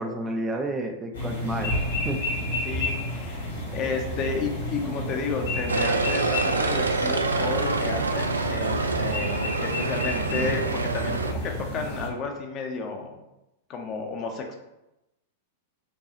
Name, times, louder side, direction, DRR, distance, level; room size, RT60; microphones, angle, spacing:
voice 1, 0.0-1.7 2.0-2.2, right 1 dB, 15° right, 2 dB, 0.5 m, -30 dB
sound 1, 1.1-12.1, left 1 dB, 75° left, 1.4 m, -31 dB
voice 2, 2.6-13.2 13.7-14.6, left 4 dB, 35° left, 3 dB, 0.6 m, -32 dB
sound 2, 5.7-11.3, right 3 dB, 75° right, 0.3 m, -26 dB
5.3 x 2.3 x 2.8 m, 0.94 s
figure-of-eight pair, 95°, 0 cm